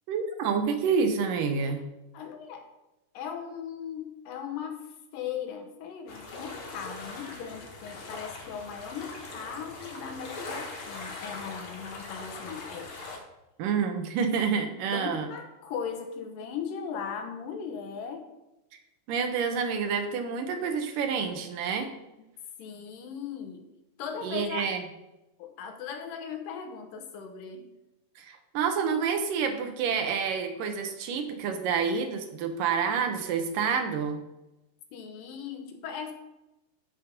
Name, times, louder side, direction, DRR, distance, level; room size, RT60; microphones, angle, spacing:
voice 1, 0.1-1.8 13.6-15.3 19.1-21.9 24.2-24.8 28.2-34.2, right 6 dB, 80° right, 5 dB, 2.7 m, -28 dB
voice 2, 2.1-2.7 3.1-13.0 14.5-18.3 22.2-22.3 22.6-23.7 24.0-24.8 25.4-27.7 34.9-36.1, left 7 dB, 90° left, 6 dB, 2.8 m, -38 dB
sound 1, 6.1-13.2, left 3 dB, 60° left, 2.7 m, -41 dB
11.5 x 5.5 x 5.2 m, 0.96 s
omnidirectional pair, 3.8 m